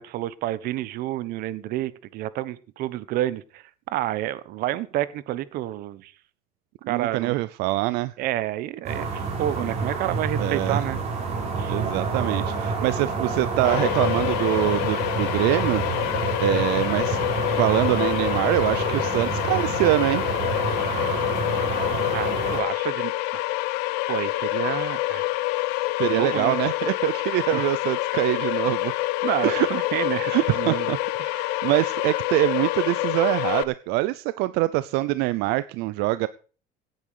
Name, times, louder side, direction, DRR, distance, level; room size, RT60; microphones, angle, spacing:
voice 1, 0.0-6.1 6.9-7.3 8.2-11.0 11.6-11.8 22.1-23.4 24.1-25.3 26.0-26.6 27.5-27.6 29.2-30.9 31.2-31.6, right 14 dB, 60° right, 17 dB, 1.2 m, -29 dB
voice 2, 6.8-8.1 10.4-10.9 11.7-15.8 16.4-17.2 17.6-20.2 26.0-28.9 29.4-29.7 30.3-31.0 31.3-36.3, right 18 dB, 80° right, 15 dB, 0.7 m, -24 dB
sound 1, 8.8-22.6, right 4 dB, 40° right, 4.9 m, -28 dB
sound 2, 13.6-33.6, left 19 dB, 85° left, 1.0 m, -27 dB
17.0 x 9.5 x 5.0 m, 0.40 s
cardioid pair, 155°, 17 cm